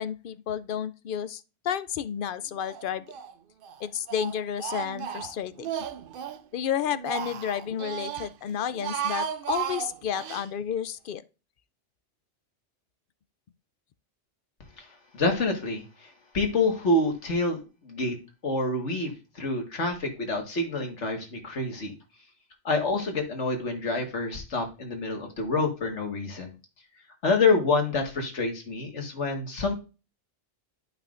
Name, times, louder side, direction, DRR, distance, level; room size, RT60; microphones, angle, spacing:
voice 1, 0.0-3.1 3.8-5.7 6.5-11.2, left 9 dB, 60° left, 0.6 m, -31 dB
Speech, 2.6-3.3 3.6-6.4 6.8-8.3 8.7-10.5, right 9 dB, 60° right, 0.7 m, -34 dB
voice 2, 15.1-18.2 18.4-21.9 22.7-26.5 27.2-29.7, left 3 dB, 80° left, 2.0 m, -27 dB
11.5 x 5.5 x 2.5 m
omnidirectional pair, 1.2 m